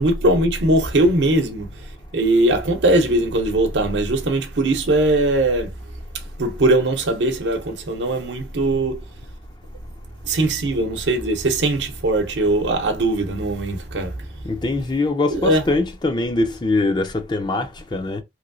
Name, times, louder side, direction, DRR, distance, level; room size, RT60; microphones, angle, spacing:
voice 1, 0.0-5.7 6.4-9.1 10.2-14.3 15.3-15.6, right 1 dB, 85° right, 0.7 m, -20 dB
voice 2, 14.4-18.2, left 2 dB, 25° left, 0.4 m, -22 dB
3.0 x 2.7 x 2.6 m
head